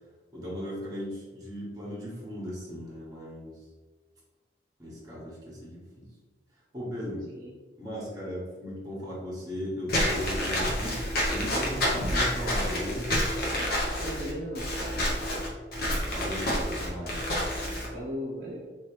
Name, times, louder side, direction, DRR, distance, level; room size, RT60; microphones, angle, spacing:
voice 1, 0.3-3.5 4.8-6.1 6.7-7.3 7.8-13.1 16.1-17.4, equal, 20° right, -5 dB, 1.2 m, -37 dB
Walk footsteps / Squeak, 9.9-17.9, left 1 dB, 55° left, 0.8 m, -28 dB
voice 2, 14.0-15.0 17.9-18.6, equal, 50° right, -4 dB, 0.6 m, -36 dB
3.3 x 3.0 x 3.2 m, 1.3 s
head